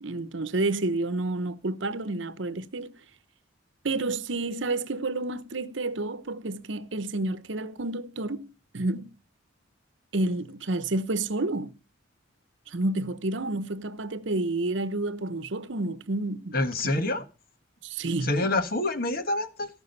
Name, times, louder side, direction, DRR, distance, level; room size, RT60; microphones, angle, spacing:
voice 1, 0.0-2.9 3.8-9.1 10.1-11.8 12.7-16.6 16.8-17.0 17.8-18.3, right 2 dB, 65° right, 0.9 m, -30 dB
voice 2, 16.5-17.2 18.2-19.7, left 2 dB, 50° left, 1.5 m, -27 dB
17.5 x 6.2 x 5.4 m
head